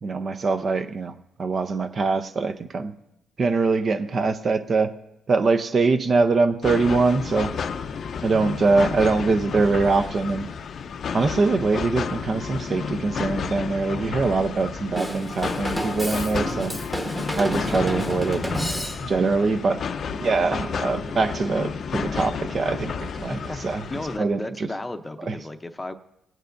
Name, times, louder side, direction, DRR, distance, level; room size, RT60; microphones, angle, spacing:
voice 1, 0.0-2.9 3.4-4.9 5.3-7.5 8.2-10.5 11.1-16.7 17.4-18.4 19.0-19.8 20.2-23.4 23.6-23.8 24.2-24.7 25.3-25.4, right 3 dB, 45° right, 10 dB, 0.6 m, -23 dB
sound 1, 6.6-24.2, left 6 dB, 55° left, 0.5 m, -31 dB
Drum kit / Drum, 15.0-19.3, right 1 dB, 10° right, 1.2 m, -30 dB
voice 2, 17.7-18.1 23.3-23.6 23.9-25.9, left 2 dB, 15° left, 8 dB, 0.7 m, -34 dB
Bowed string instrument, 19.8-24.5, right 3 dB, 60° right, 1.5 m, -44 dB
18.5 x 9.1 x 2.6 m, 0.85 s
cardioid pair, 90°, 0 cm